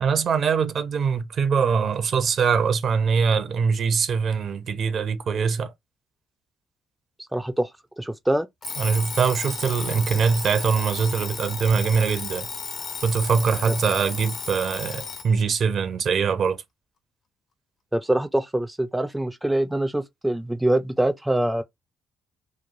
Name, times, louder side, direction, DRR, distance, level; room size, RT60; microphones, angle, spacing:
voice 1, 0.0-5.7 8.8-12.5 13.0-16.6, right 6 dB, 55° right, 0.6 m, -23 dB
voice 2, 7.3-7.7 8.0-8.5 17.9-21.6, right 1 dB, 5° right, 0.3 m, -24 dB
Alarm, 8.6-15.3, left 5 dB, 50° left, 0.6 m, -34 dB
3.1 x 2.1 x 2.5 m
supercardioid pair, 75°, 0 cm